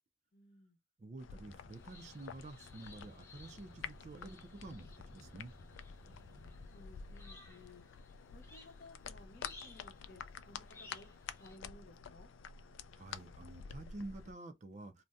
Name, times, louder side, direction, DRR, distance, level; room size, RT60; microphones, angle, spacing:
voice 1, 0.3-0.8 6.4-7.8 8.3-11.1 11.4-12.3, left 2 dB, 55° left, 0.7 m, -58 dB
voice 2, 1.0-5.5 13.0-15.0, right 2 dB, 40° right, 0.4 m, -49 dB
sound 1, 1.2-14.3, left 7 dB, 85° left, 0.3 m, -50 dB
sound 2, 1.2-7.2, equal, 80° right, 0.8 m, -60 dB
sound 3, 1.7-11.6, left 3 dB, 15° left, 0.6 m, -60 dB
2.6 x 2.1 x 3.4 m
head